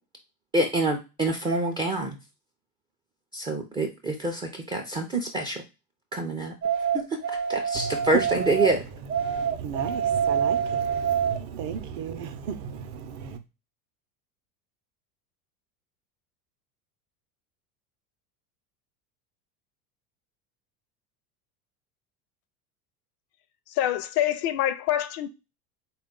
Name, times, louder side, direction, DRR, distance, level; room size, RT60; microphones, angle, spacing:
voice 1, 0.5-2.2 3.3-5.6 6.1-6.5 7.5-8.8, right 2 dB, 10° right, 0.3 m, -26 dB
sound 1, 6.6-8.7 9.1-11.4, right 7 dB, 90° right, 0.8 m, -26 dB
voice 2, 7.7-13.4, right 7 dB, 50° right, 0.6 m, -35 dB
voice 3, 23.7-25.3, left 12 dB, 50° left, 0.5 m, -25 dB
3.6 x 2.4 x 3.6 m
hypercardioid pair, 90°, 48 cm